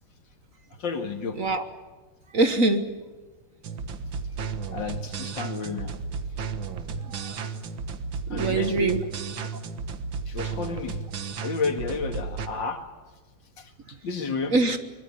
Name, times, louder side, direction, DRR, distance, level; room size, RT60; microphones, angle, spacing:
voice 1, 0.8-1.4 4.7-5.9 8.3-9.0 10.3-11.0 11.4-12.8 13.6-14.5, left 4 dB, 65° left, 6 dB, 2.7 m, -31 dB
voice 2, 2.3-2.8 7.0-7.4 8.3-9.0 14.5-14.8, right 2 dB, 45° right, 9 dB, 1.6 m, -23 dB
sound 1, 3.6-12.5, right 5 dB, 75° right, 2.2 m, -33 dB
24.0 x 22.5 x 8.6 m, 1.3 s
omnidirectional pair, 2.2 m